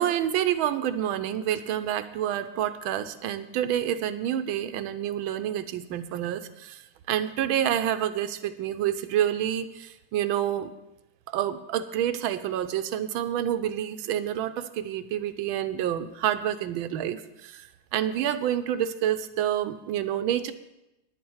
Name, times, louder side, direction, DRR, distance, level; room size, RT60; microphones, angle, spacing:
voice 1, 0.0-6.8 7.1-10.7 11.3-17.7 17.9-20.5, right 10 dB, 75° right, 12 dB, 1.3 m, -28 dB
10.5 x 8.6 x 7.1 m, 0.92 s
omnidirectional pair, 2.4 m